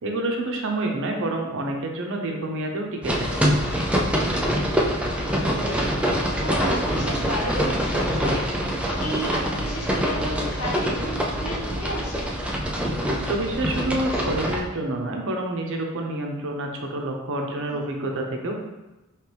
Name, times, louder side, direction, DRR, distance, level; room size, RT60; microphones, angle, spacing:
voice 1, 0.0-3.4 13.1-18.6, right 2 dB, 60° right, 1 dB, 0.7 m, -28 dB
voice 2, 3.0-3.6 5.1-12.3 17.5-17.9, equal, 80° left, -3 dB, 1.2 m, -34 dB
sound 1, 3.0-14.6, equal, 5° right, 0.4 m, -25 dB
4.5 x 3.2 x 3.3 m, 1.0 s
head